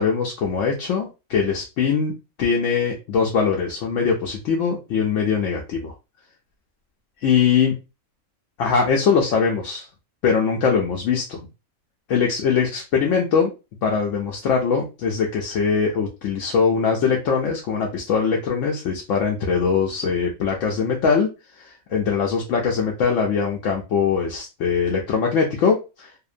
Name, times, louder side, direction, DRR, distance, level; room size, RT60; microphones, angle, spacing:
voice 1, 0.0-2.1 2.4-5.9 7.2-7.7 8.6-9.9 10.2-11.4 12.1-13.5 13.8-21.3 21.6-26.1, left 6 dB, 65° left, 0 dB, 0.8 m, -22 dB
2.7 x 2.1 x 2.4 m, 0.28 s
omnidirectional pair, 1.6 m